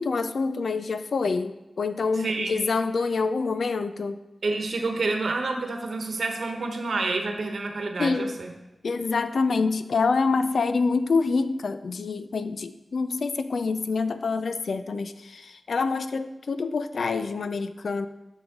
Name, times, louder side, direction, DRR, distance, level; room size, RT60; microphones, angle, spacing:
voice 1, 0.0-4.2 8.0-8.4 8.8-18.1, left 4 dB, 80° left, 11 dB, 0.4 m, -26 dB
voice 2, 2.2-2.6 4.4-8.5, right 3 dB, 80° right, 4 dB, 1.1 m, -28 dB
9.7 x 5.5 x 3.7 m, 0.99 s
wide cardioid pair, 65°, 0 cm